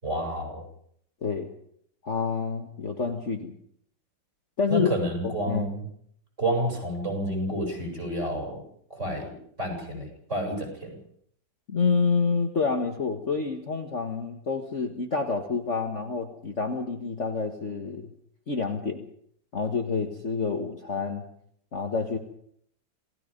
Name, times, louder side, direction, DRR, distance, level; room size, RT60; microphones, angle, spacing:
voice 1, 0.0-0.6 4.7-5.9 6.4-8.6 8.9-9.3 9.6-11.0, right 1 dB, 30° right, 1 dB, 8.3 m, -30 dB
voice 2, 1.2-1.5 2.0-3.5 4.6-4.9 5.2-5.7 11.7-18.1 18.5-19.0 19.5-21.3 21.7-22.2, left 5 dB, 35° left, 3 dB, 1.7 m, -28 dB
27.5 x 19.0 x 5.3 m, 0.67 s
omnidirectional pair, 2.4 m